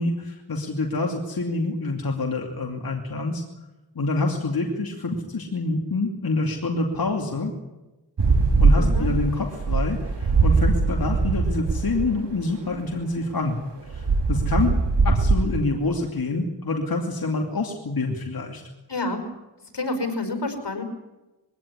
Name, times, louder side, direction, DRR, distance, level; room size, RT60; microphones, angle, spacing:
voice 1, 0.0-3.4 3.9-7.5 8.6-14.8 15.0-18.6, left 3 dB, 60° left, 1 dB, 2.7 m, -27 dB
sound 1, 8.2-12.1 13.9-15.6, right 3 dB, 85° right, 2.8 m, -21 dB
voice 2, 8.7-9.1 18.9-19.3 19.7-20.8, left 2 dB, 80° left, 6 dB, 4.9 m, -28 dB
21.5 x 17.5 x 9.8 m, 1.1 s
wide cardioid pair, 60°, 41 cm